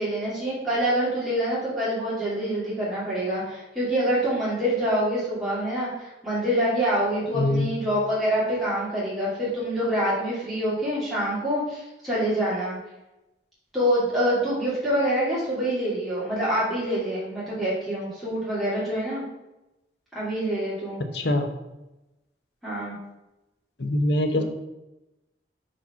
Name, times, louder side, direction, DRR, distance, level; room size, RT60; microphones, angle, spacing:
voice 1, 0.0-12.8 13.7-19.2 20.1-21.0 22.6-23.0 24.4-24.5, equal, ahead, -10 dB, 2.6 m, -26 dB
voice 2, 7.3-7.7 21.1-21.5 23.8-24.4, left 1 dB, 80° left, 5 dB, 1.1 m, -23 dB
6.1 x 4.8 x 5.7 m, 0.97 s
head